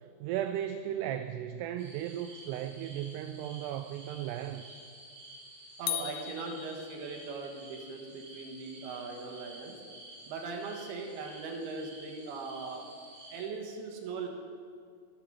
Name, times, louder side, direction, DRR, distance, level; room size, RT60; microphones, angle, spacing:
voice 1, 0.2-4.8, right 11 dB, 85° right, 9 dB, 2.4 m, -36 dB
sound 1, 1.8-13.4, right 1 dB, 40° right, 5.2 m, -51 dB
voice 2, 5.8-9.7 10.3-12.9 13.3-14.3, right 4 dB, 70° right, 1 dB, 3.2 m, -40 dB
sound 2, 5.9-7.5, left 14 dB, 85° left, 2.3 m, -38 dB
13.0 x 12.5 x 5.0 m, 2.3 s
omnidirectional pair, 5.1 m